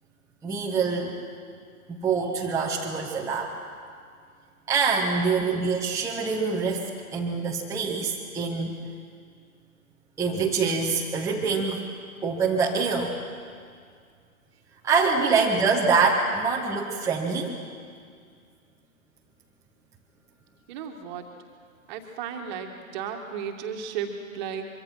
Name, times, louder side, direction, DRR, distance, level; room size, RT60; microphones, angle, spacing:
voice 1, 0.4-1.1 1.9-3.6 4.7-8.8 10.2-11.9 12.2-13.1 14.8-17.6, right 4 dB, 5° right, -4 dB, 1.4 m, -25 dB
voice 2, 5.4-5.7 15.2-15.6 20.7-21.2 21.9-24.7, right 7 dB, 30° right, 4 dB, 2.2 m, -34 dB
24.0 x 24.0 x 5.9 m, 2.1 s
figure-of-eight pair, 120°, 43 cm